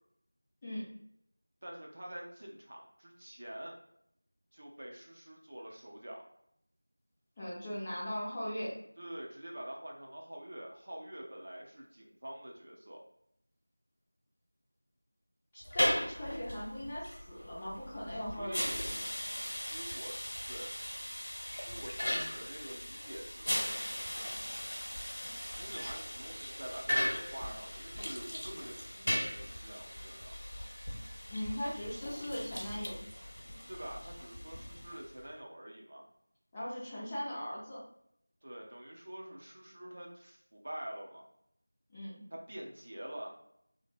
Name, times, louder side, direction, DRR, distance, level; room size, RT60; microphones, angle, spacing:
voice 1, 1.6-3.7 4.5-6.2 9.0-13.0 18.1-18.8 19.5-20.2 20.5-20.7 21.6-24.4 25.5-30.4 33.7-36.0 38.4-41.2 42.5-43.3, right 1 dB, 40° right, -1 dB, 0.5 m, -46 dB
voice 2, 7.4-8.8 15.5-18.9 31.3-33.0 36.5-37.8 41.9-42.2, equal, 10° left, -9 dB, 0.4 m, -39 dB
sound 1, 15.6-35.2, equal, 70° left, 0.8 m, -38 dB
3.0 x 2.0 x 3.2 m, 0.74 s
figure-of-eight pair, 175°, 0 cm